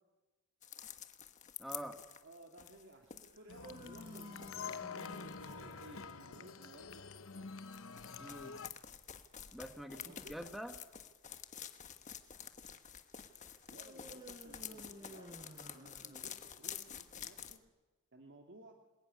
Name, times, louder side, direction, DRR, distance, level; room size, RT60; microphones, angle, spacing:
sound 1, 0.6-6.1 7.6-17.6, left 9 dB, 35° left, 1.3 m, -50 dB
voice 1, 1.6-2.0 8.2-8.6 9.5-10.7, equal, ahead, 6 dB, 1.4 m, -46 dB
voice 2, 2.2-7.7 9.9-10.4 13.7-16.3 16.6-17.6 18.1-18.8, right 1 dB, 55° right, 2 dB, 2.2 m, -58 dB
sound 2, 3.4-6.6 13.8-16.7, equal, 25° right, 6.5 m, -54 dB
sound 3, 3.5-8.7, left 5 dB, 65° left, 0.9 m, -47 dB
28.0 x 21.0 x 9.6 m, 1.2 s
head